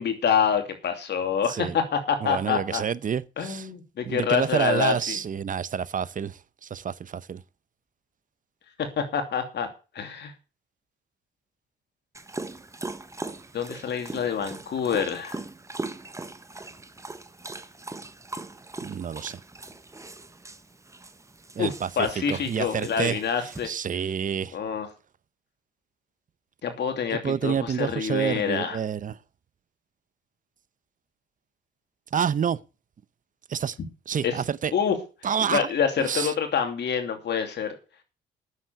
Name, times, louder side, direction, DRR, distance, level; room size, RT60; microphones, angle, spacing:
voice 1, 0.0-2.8 3.4-5.2 8.8-9.7 9.9-10.3 13.5-15.4 21.6-23.7 24.5-24.9 26.6-28.8 34.2-34.3 34.7-35.0 35.5-37.7, left 7 dB, 60° left, 2.7 m, -27 dB
voice 2, 2.2-3.7 4.0-7.4 18.8-19.4 21.5-24.6 27.1-29.2 32.1-32.6 33.5-33.8 34.1-34.7 35.2-35.7 36.0-36.3, right 7 dB, 40° right, 0.8 m, -28 dB
Dog, 12.1-23.7, right 2 dB, 15° right, 1.1 m, -40 dB
9.5 x 7.4 x 8.0 m
cardioid pair, 90°, 20 cm